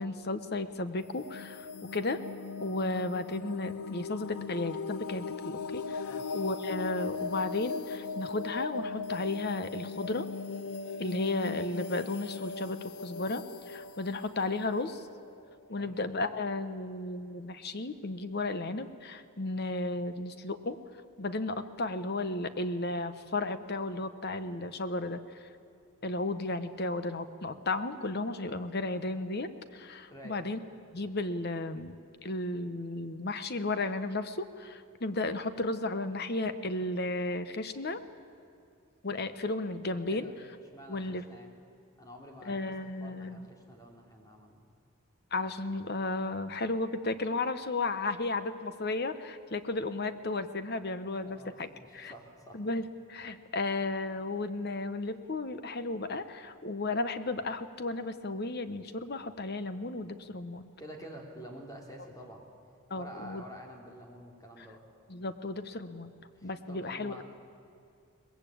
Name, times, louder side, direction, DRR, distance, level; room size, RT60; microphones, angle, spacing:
voice 1, 0.0-2.2 2.6-10.3 11.0-15.1 15.7-20.8 21.2-25.2 26.0-30.6 30.9-32.0 32.2-38.0 39.0-40.3 40.9-41.2 42.4-43.5 45.3-52.1 52.5-52.8 53.1-60.7 62.9-63.4 64.6-64.7 65.1-66.1 66.4-67.2, left 2 dB, 50° left, 11 dB, 1.1 m, -34 dB
sound 1, 1.0-15.7, left 4 dB, 85° left, 0.7 m, -39 dB
voice 2, 40.7-41.5 42.0-42.7 43.0-44.6 51.2-52.6 60.8-62.4 62.9-64.8 66.4-67.2, equal, 15° left, 1 dB, 3.1 m, -48 dB
22.5 x 20.0 x 8.7 m, 2.4 s
head